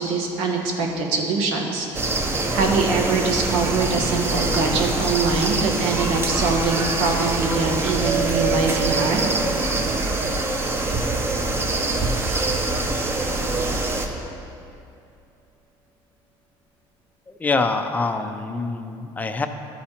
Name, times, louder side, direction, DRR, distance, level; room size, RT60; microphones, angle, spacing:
voice 1, 0.0-9.3, right 4 dB, 90° right, 1 dB, 1.1 m, -23 dB
sound 1, 1.9-14.1, right 2 dB, 25° right, 0.7 m, -24 dB
sound 2, 8.0-12.7, right 8 dB, 40° right, 1.4 m, -32 dB
voice 2, 17.4-19.5, left 3 dB, 15° left, 7 dB, 0.4 m, -25 dB
12.0 x 4.2 x 4.3 m, 2.6 s
cardioid pair, 120°, 10 cm